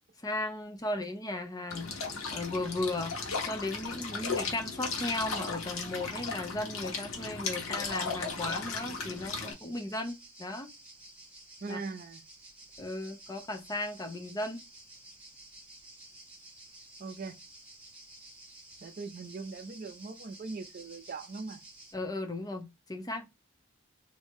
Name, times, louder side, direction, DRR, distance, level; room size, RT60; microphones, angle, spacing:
voice 1, 0.2-1.9 2.3-3.2 3.4-10.7 11.7-11.8 12.8-14.6 21.9-23.3, left 2 dB, 20° left, 0.6 m, -36 dB
sound 1, 1.7-9.5, left 4 dB, 80° left, 1.0 m, -36 dB
sound 2, 9.1-21.9, right 2 dB, 5° right, 1.5 m, -53 dB
voice 2, 11.6-12.2 17.0-17.4 18.8-21.6, right 4 dB, 45° right, 0.4 m, -40 dB
3.0 x 2.7 x 3.5 m
head